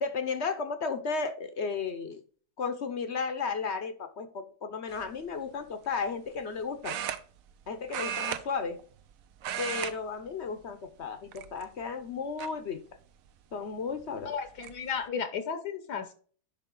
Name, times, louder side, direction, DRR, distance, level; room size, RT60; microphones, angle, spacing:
voice 1, 0.0-2.2 2.6-7.0 7.7-8.8 9.6-12.8 13.5-14.3, left 5 dB, 50° left, 9 dB, 0.9 m, -34 dB
sound 1, 4.9-5.2 6.8-7.6 7.9-9.1 9.4-9.9 10.2-10.5 11.3-11.8 12.4-12.5 13.9-14.0 14.3-14.7, right 9 dB, 65° right, 0.9 m, -35 dB
voice 2, 14.3-16.1, left 6 dB, 75° left, 9 dB, 1.4 m, -34 dB
10.5 x 3.7 x 3.7 m, 0.43 s
omnidirectional pair, 1.8 m